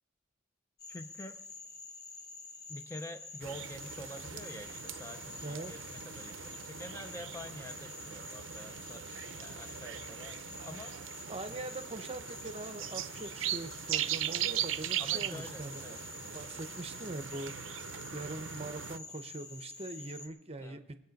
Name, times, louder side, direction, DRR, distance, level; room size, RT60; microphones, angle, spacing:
Frog, 0.8-20.3, left 3 dB, 50° left, 1.3 m, -48 dB
voice 1, 0.9-1.4 2.7-10.9 15.0-16.5 17.0-17.1 20.6-20.8, left 1 dB, 15° left, 7 dB, 0.4 m, -47 dB
sound 1, 3.4-19.0, right 11 dB, 75° right, 0.5 m, -40 dB
voice 2, 5.4-5.7 11.3-15.8 16.3-17.8 18.1-20.9, right 2 dB, 30° right, 9 dB, 0.7 m, -42 dB
22.5 x 8.2 x 5.2 m, 0.96 s
head